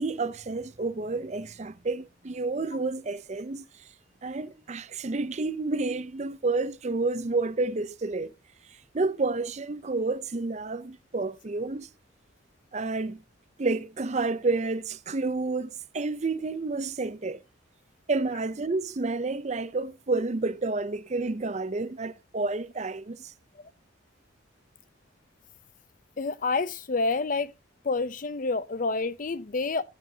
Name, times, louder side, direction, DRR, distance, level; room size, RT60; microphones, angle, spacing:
voice 1, 0.0-3.6 4.2-8.3 8.9-11.9 12.7-13.2 13.6-17.4 18.1-23.3, right 3 dB, 35° right, 0.5 m, -30 dB
voice 2, 26.2-27.5 27.8-29.8, left 3 dB, 40° left, 0.5 m, -28 dB
11.5 x 11.0 x 2.8 m
head